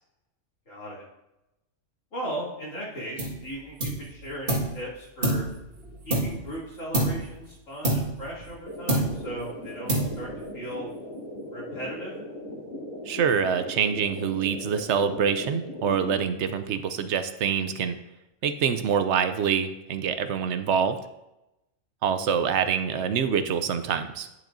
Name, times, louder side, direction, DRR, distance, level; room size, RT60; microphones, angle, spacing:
voice 1, 0.7-1.0 2.1-5.4 6.0-10.3 10.5-10.9 11.5-12.1 22.9-23.1, equal, 85° left, -6 dB, 3.1 m, -37 dB
sound 1, 3.2-3.5 3.8-4.8 5.2-6.6 6.9-7.3 7.8-8.6 8.9-9.4 9.9-10.4, right 1 dB, 45° right, 1.9 m, -27 dB
sound 2, 8.7-16.2, left 1 dB, 30° left, 2.1 m, -38 dB
voice 2, 13.1-18.0 18.4-21.0 22.0-24.3, right 7 dB, 70° right, 10 dB, 0.9 m, -25 dB
9.6 x 7.5 x 2.6 m, 0.92 s
omnidirectional pair, 1.3 m